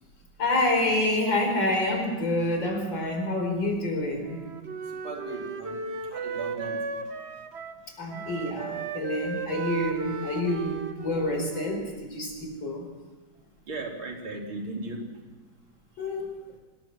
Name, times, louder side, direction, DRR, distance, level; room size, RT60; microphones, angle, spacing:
voice 1, 0.4-4.5 8.0-12.9 16.0-16.3, left 1 dB, 65° left, 2 dB, 5.4 m, -28 dB
Wind instrument woodwind instrument, 4.2-12.0, right 5 dB, 40° right, 1.2 m, -35 dB
voice 2, 5.0-5.8 6.1-6.9 13.7-15.2, right 2 dB, 80° right, 1 dB, 3.9 m, -37 dB
26.0 x 19.5 x 6.0 m, 1.2 s
omnidirectional pair, 2.2 m